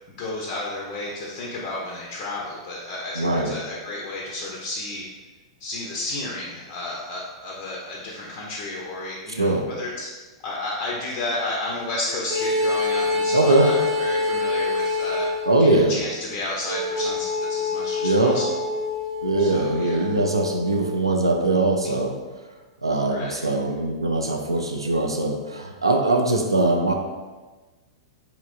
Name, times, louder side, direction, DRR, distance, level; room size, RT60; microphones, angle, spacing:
voice 1, 0.1-5.0 5.6-10.1 10.4-15.3 15.6-18.7 19.4-20.1 23.1-23.5, left 2 dB, 40° left, -3 dB, 0.4 m, -32 dB
voice 2, 3.2-3.5 9.3-9.7 13.3-13.7 15.5-15.9 18.0-18.4 19.2-22.2 22.8-26.9, right 2 dB, 80° right, 3 dB, 0.3 m, -21 dB
sound 1, 12.3-15.6 16.6-21.0, left 3 dB, 55° right, 0.7 m, -26 dB
2.8 x 2.5 x 2.4 m, 1.3 s
figure-of-eight pair, 100°, 3 cm